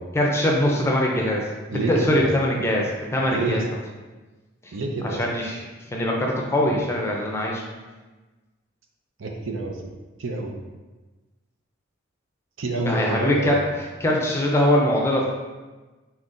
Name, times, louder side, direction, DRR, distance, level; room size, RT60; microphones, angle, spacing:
voice 1, 0.1-1.4 1.7-3.6 4.6-4.7 5.2-5.6 5.9-7.6 12.8-15.3, left 1 dB, 15° left, -1 dB, 0.5 m, -22 dB
voice 2, 1.7-2.3 3.3-3.6 4.7-5.2 9.2-9.8 10.2-10.6 12.6-13.6, right 2 dB, 80° right, 2 dB, 0.6 m, -27 dB
4.0 x 2.9 x 3.8 m, 1.2 s
head